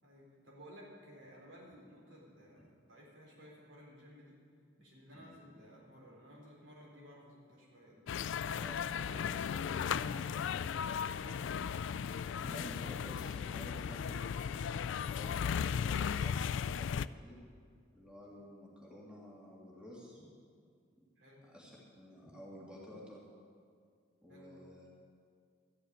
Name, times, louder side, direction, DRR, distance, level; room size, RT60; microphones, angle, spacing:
voice 1, 0.0-4.4 4.8-10.1 12.2-13.1 13.5-14.5 21.2-21.4 24.3-24.7, equal, 75° right, -3 dB, 4.0 m, -56 dB
sound 1, 8.1-17.1, left 7 dB, 70° left, 0.3 m, -36 dB
voice 2, 12.4-14.0 15.1-17.5 17.9-20.2 21.0-21.1 21.4-23.2 24.2-24.9, left 1 dB, 5° right, -5 dB, 2.3 m, -52 dB
13.0 x 6.8 x 9.5 m, 2.2 s
head